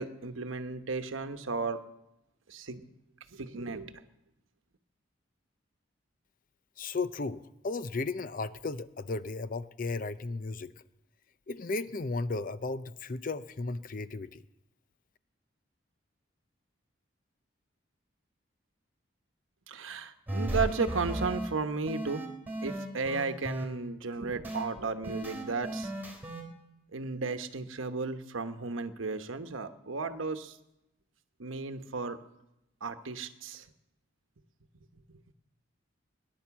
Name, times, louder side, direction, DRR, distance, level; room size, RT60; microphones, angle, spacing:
voice 1, 0.0-1.8 2.5-2.8 3.3-3.9 19.7-22.2 22.6-25.9 26.9-30.6 31.4-32.2 32.8-33.6, right 4 dB, 85° right, 9 dB, 1.0 m, -34 dB
voice 2, 6.8-10.7 11.5-14.4, left 3 dB, 45° left, 14 dB, 0.6 m, -35 dB
sound 1, 20.3-21.5 21.9-23.7 24.4-24.6 25.0-26.4, right 1 dB, 10° right, 3.2 m, -35 dB
19.0 x 10.5 x 7.1 m, 0.89 s
head